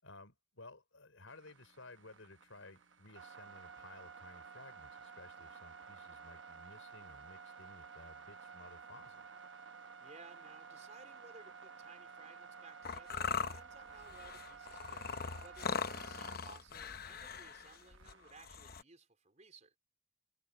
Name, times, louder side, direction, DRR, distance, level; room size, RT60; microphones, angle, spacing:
voice 1, 0.0-9.2, left 2 dB, 80° left, 5.2 m, -56 dB
sound 1, 1.3-18.8, right 5 dB, 65° right, 1.1 m, -54 dB
voice 2, 10.0-15.1 15.4-19.8, right 3 dB, 35° right, 4.4 m, -59 dB
sound 2, 12.8-18.8, left 5 dB, 50° left, 0.9 m, -41 dB
head